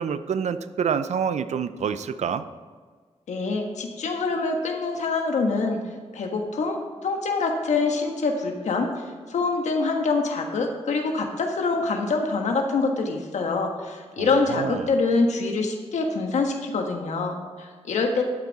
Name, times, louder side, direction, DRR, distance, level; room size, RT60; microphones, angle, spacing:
voice 1, 0.0-2.5 14.2-14.9, right 7 dB, 80° right, 12 dB, 0.5 m, -27 dB
voice 2, 3.3-5.8 6.1-8.9 9.3-18.2, left 3 dB, 85° left, 3 dB, 1.4 m, -25 dB
11.5 x 8.5 x 4.1 m, 1.5 s
cardioid pair, 85°, 12 cm